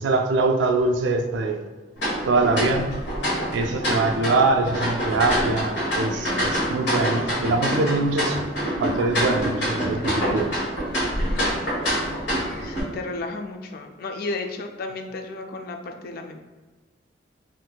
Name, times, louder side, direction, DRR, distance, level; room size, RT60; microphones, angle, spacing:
voice 1, 0.0-1.6 2.3-3.0 3.5-8.4 8.8-10.6, right 3 dB, 75° right, 4 dB, 0.3 m, -23 dB
sound 1, 2.0-12.8, equal, 70° left, 1.3 m, -26 dB
voice 2, 6.1-6.7 11.0-11.7 12.6-16.4, left 3 dB, 50° left, 4 dB, 0.3 m, -34 dB
3.8 x 2.6 x 2.2 m, 1.3 s
head